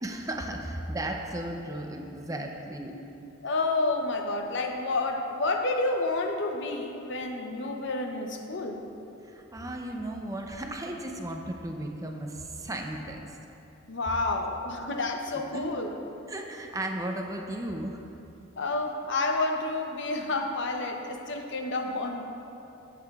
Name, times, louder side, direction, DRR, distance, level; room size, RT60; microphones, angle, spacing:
voice 1, 0.0-2.9 9.2-13.4 15.5-15.7 16.3-18.0, right 1 dB, 15° right, 2 dB, 0.5 m, -35 dB
voice 2, 3.4-8.8 13.9-15.9 18.6-22.3, left 2 dB, 60° left, 3 dB, 0.7 m, -29 dB
14.0 x 7.5 x 2.4 m, 2.8 s
head